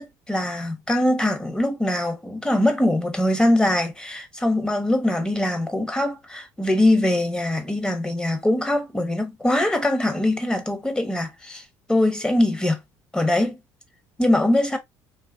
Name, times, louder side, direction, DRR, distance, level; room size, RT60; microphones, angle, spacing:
voice 1, 0.0-12.8 13.1-13.6 14.2-14.8, left 1 dB, 10° left, 0.9 m, -22 dB
2.9 x 2.4 x 2.4 m
supercardioid pair, 80°, 9 cm